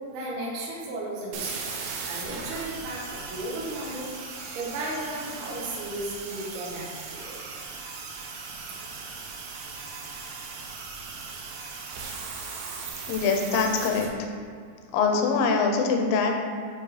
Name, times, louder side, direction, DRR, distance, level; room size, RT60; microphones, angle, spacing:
voice 1, 0.1-1.7 2.0-7.4, right 1 dB, 75° right, -5 dB, 2.9 m, -35 dB
sound 1, 1.3-14.1, right 4 dB, 90° right, 2.9 m, -38 dB
voice 2, 13.1-14.3 14.9-16.4, left 4 dB, 80° left, 3 dB, 2.2 m, -24 dB
8.5 x 4.5 x 3.3 m, 2.1 s
omnidirectional pair, 4.8 m